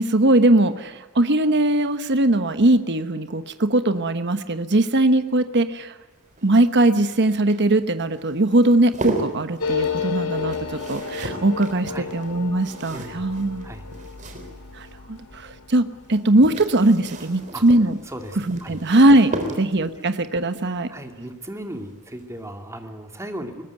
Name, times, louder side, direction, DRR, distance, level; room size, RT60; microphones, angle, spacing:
voice 1, 0.0-5.9 6.4-13.7 14.7-18.0 18.5-20.9, right 1 dB, 55° right, 9 dB, 1.2 m, -20 dB
sound 1, 6.1-15.0 16.1-20.0 21.6-21.9 22.2-22.3, right 1 dB, 35° right, 3.8 m, -35 dB
sound 2, 9.6-18.7 19.0-19.1 19.3-19.9, left 6 dB, 85° left, 2.7 m, -33 dB
voice 2, 12.9-13.3 13.6-13.8 17.5-17.6 18.1-18.8 19.5-20.1 20.9-23.6, right 1 dB, 15° right, 4 dB, 2.5 m, -36 dB
22.0 x 19.5 x 9.3 m, 1.1 s
head